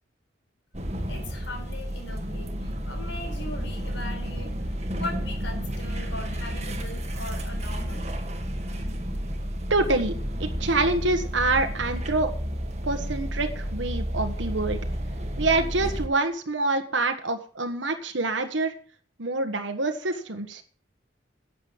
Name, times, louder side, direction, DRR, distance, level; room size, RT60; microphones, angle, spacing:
sound 1, 0.7-16.1, equal, 35° right, 1.7 m, -31 dB
voice 1, 1.1-8.0, left 2 dB, 80° left, 3 dB, 4.7 m, -40 dB
voice 2, 9.7-10.1 10.4-12.3 12.8-14.8 15.4-18.7 19.2-20.6, right 2 dB, 85° right, 5 dB, 1.5 m, -26 dB
11.0 x 8.0 x 7.3 m, 0.43 s
head